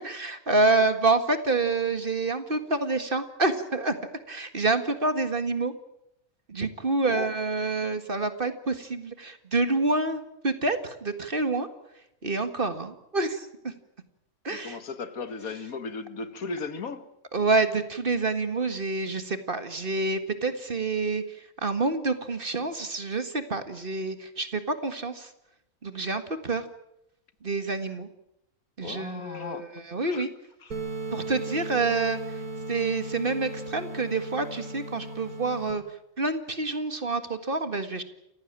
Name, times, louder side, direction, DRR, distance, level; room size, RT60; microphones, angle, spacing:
voice 1, 0.0-4.0 4.3-5.7 6.5-11.7 12.0-13.7 14.4-14.8 17.3-25.3 25.8-26.7 27.4-28.1 28.8-30.3 31.1-32.4 32.7-38.0, right 3 dB, 35° right, 1.9 m, -28 dB
voice 2, 14.5-17.1 28.8-29.7 30.1-30.2, left 4 dB, 70° left, 1.9 m, -36 dB
sound 1, 30.7-35.7, right 2 dB, 80° right, 3.9 m, -36 dB
29.0 x 15.5 x 8.9 m
omnidirectional pair, 1.5 m